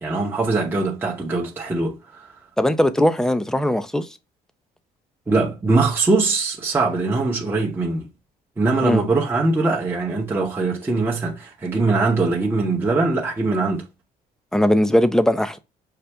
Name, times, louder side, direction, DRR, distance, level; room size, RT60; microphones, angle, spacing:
voice 1, 0.0-2.0 5.3-8.1 8.6-13.8, right 3 dB, 10° right, 0.9 m, -21 dB
voice 2, 2.6-4.1 8.8-9.0 14.5-15.6, left 1 dB, 5° left, 0.5 m, -19 dB
5.7 x 2.5 x 3.3 m
cardioid pair, 110°, 17 cm